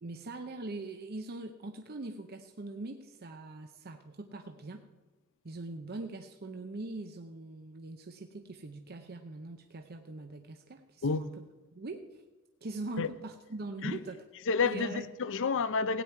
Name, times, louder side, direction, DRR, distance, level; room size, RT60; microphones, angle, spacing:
voice 1, 0.0-4.8 5.4-11.4 11.7-12.2 12.6-14.2 14.6-15.1, right 2 dB, 45° right, 0.7 m, -42 dB
voice 2, 14.5-16.0, left 4 dB, 60° left, 0.6 m, -30 dB
16.5 x 9.1 x 4.5 m
head